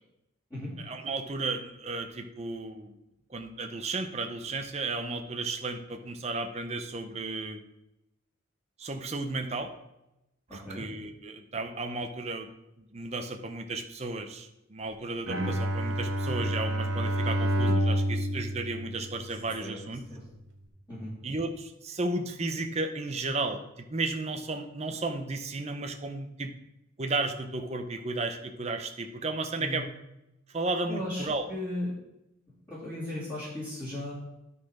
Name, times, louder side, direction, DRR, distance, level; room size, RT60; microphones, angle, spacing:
voice 1, 0.8-2.9 3.3-7.6 8.8-9.7 10.5-12.5 12.8-20.0 21.2-26.5 27.0-29.9 30.5-31.4, right 3 dB, 30° right, 6 dB, 0.6 m, -34 dB
voice 2, 10.5-10.8 19.6-19.7 20.1-20.2 20.9-21.1 29.6-29.8 30.9-31.9 32.7-34.1, left 1 dB, 15° left, -12 dB, 2.9 m, -36 dB
Bowed string instrument, 15.3-19.7, right 1 dB, 65° right, 1.1 m, -29 dB
10.5 x 4.2 x 4.9 m, 0.88 s
head